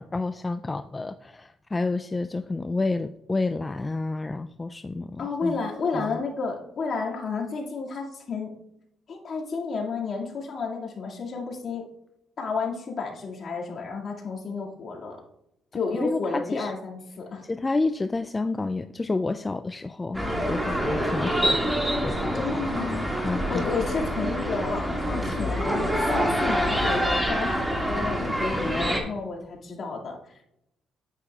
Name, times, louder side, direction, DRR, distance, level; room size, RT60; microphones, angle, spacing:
voice 1, 0.0-5.6 5.9-6.2 16.0-16.7 17.4-22.5 23.2-23.7, left 3 dB, 20° left, 10 dB, 0.3 m, -30 dB
voice 2, 5.2-8.5 9.1-11.8 12.4-15.2 15.7-17.4 22.3-23.1 23.5-30.4, left 4 dB, 55° left, -2 dB, 2.2 m, -31 dB
sound 1, 20.1-29.0, equal, 10° right, 2.0 m, -26 dB
9.5 x 8.8 x 2.4 m, 0.80 s
cardioid pair, 90°, 0 cm